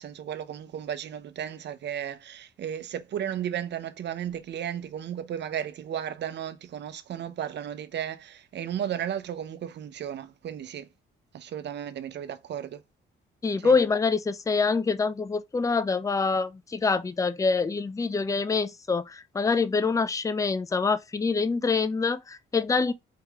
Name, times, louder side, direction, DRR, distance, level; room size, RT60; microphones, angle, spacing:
voice 1, 0.0-10.9 11.3-12.8 13.6-13.8, right 9 dB, 60° right, 0.8 m, -34 dB
voice 2, 13.4-22.9, left 4 dB, 15° left, 0.5 m, -25 dB
4.7 x 3.1 x 3.6 m
cardioid pair, 90°, 20 cm